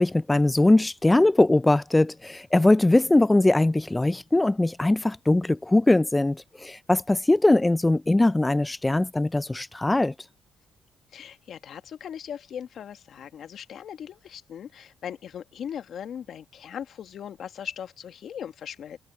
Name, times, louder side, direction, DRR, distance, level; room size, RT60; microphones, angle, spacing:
voice 1, 0.0-10.1, left 2 dB, 15° left, 0.3 m, -21 dB
voice 2, 11.1-19.0, left 8 dB, 65° left, 1.5 m, -39 dB
cardioid pair, 90°, 0 cm